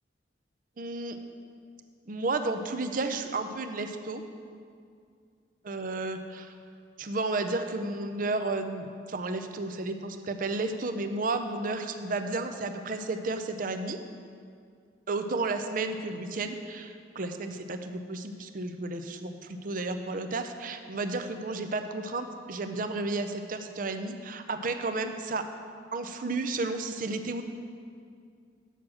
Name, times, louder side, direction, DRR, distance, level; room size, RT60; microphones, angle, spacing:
voice 1, 0.8-1.2 2.1-4.2 5.6-6.5 7.0-14.0 15.1-19.4 19.6-25.5 25.9-27.4, right 3 dB, 45° right, 7 dB, 0.5 m, -32 dB
7.9 x 6.0 x 6.2 m, 2.2 s
head